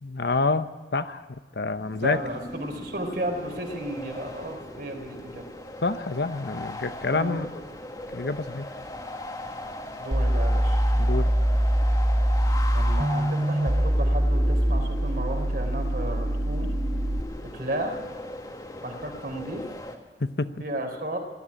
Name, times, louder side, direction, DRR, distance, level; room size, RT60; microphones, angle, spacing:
voice 1, 0.0-2.2 5.8-7.5 8.1-8.7 11.0-11.3 20.2-20.5, left 3 dB, 65° left, 11 dB, 0.9 m, -28 dB
sound 1, 1.6-20.0, left 1 dB, 20° left, 1.7 m, -39 dB
voice 2, 2.0-5.4 7.1-7.4 10.0-10.8 12.7-16.7 17.4-18.0 18.8-19.7 20.6-21.2, right 1 dB, 55° right, 3 dB, 4.0 m, -33 dB
sound 2, 10.1-17.2, right 1 dB, 25° right, 0.9 m, -23 dB
19.0 x 13.5 x 10.0 m, 1.4 s
head